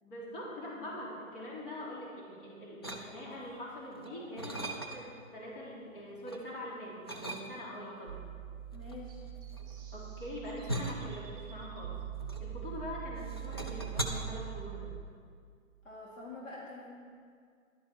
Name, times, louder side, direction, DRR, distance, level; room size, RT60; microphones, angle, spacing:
voice 1, 0.0-5.1 5.3-8.2 9.9-12.0 12.4-14.9, left 1 dB, 40° left, -5 dB, 3.4 m, -43 dB
sound 1, 2.8-3.5 3.9-5.3 5.7-6.5 7.1-7.9 8.7-12.9 13.2-14.0, right 1 dB, 20° left, 0.4 m, -40 dB
voice 2, 4.1-4.5 8.7-9.2 15.8-16.9, left 3 dB, 65° left, -5 dB, 3.0 m, -47 dB
sound 2, 8.1-15.0, right 10 dB, 50° right, 1.0 m, -43 dB
sound 3, 9.1-11.8, right 4 dB, 20° right, 2.9 m, -58 dB
11.5 x 11.0 x 4.5 m, 2.1 s
hypercardioid pair, 155°, 41 cm